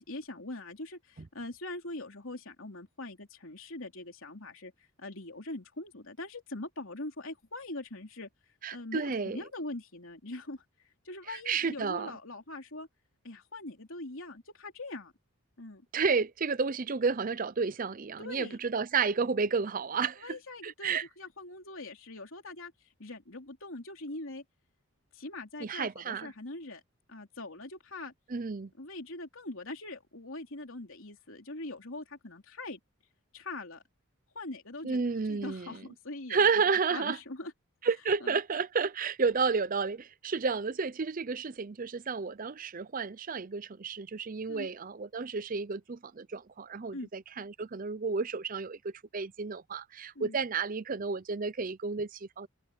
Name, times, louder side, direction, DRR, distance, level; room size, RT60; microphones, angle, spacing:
voice 1, 0.0-4.7 5.0-8.3 8.7-10.6 11.1-12.9 13.2-15.1 15.6-15.8 18.2-18.6 20.2-22.7 23.0-24.4 25.1-26.8 27.1-28.1 28.8-32.8 33.3-33.8 34.4-37.5 38.2-38.4 44.5-44.7 46.9-47.1 50.2-50.4, left 2 dB, 65° left, 3.5 m, -42 dB
voice 2, 8.6-9.4 11.3-12.1 15.9-20.4 20.6-21.1 25.6-26.3 28.3-28.7 34.8-35.8 36.3-37.2 37.8-52.5, right 5 dB, 40° right, 0.6 m, -31 dB
head